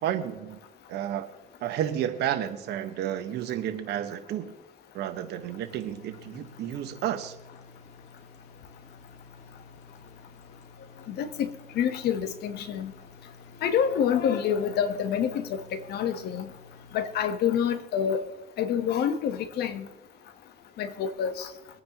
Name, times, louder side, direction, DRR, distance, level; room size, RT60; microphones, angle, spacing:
voice 1, 0.0-0.6 0.9-1.3 1.6-4.5 4.9-7.3, right 10 dB, 75° right, 1.4 m, -31 dB
sound 1, 5.4-17.3, left 4 dB, 45° left, 2.0 m, -52 dB
voice 2, 11.1-12.9 13.6-16.5 16.9-18.3 18.6-19.9 20.8-21.5, left 8 dB, 75° left, 1.4 m, -27 dB
24.0 x 9.6 x 3.1 m
cardioid pair, 110°, 17 cm